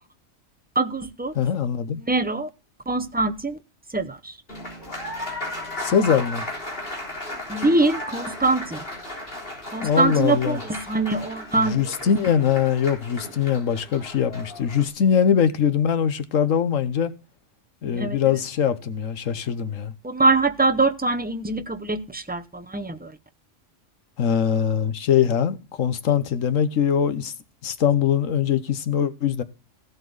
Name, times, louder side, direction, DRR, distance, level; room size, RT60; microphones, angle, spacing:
voice 1, 0.7-1.3 1.9-2.5 2.9-3.6 3.9-4.4 7.5-8.8 9.7-11.8 17.9-18.2 20.0-23.1, right 3 dB, 10° right, 0.5 m, -23 dB
voice 2, 1.3-2.0 5.8-6.4 9.8-10.6 11.6-17.1 17.8-19.9 24.2-27.3 27.6-29.4, left 8 dB, 85° left, 1.4 m, -22 dB
Applause, 4.5-14.9, left 1 dB, 45° left, 4.0 m, -35 dB
15.5 x 8.0 x 3.9 m
omnidirectional pair, 1.3 m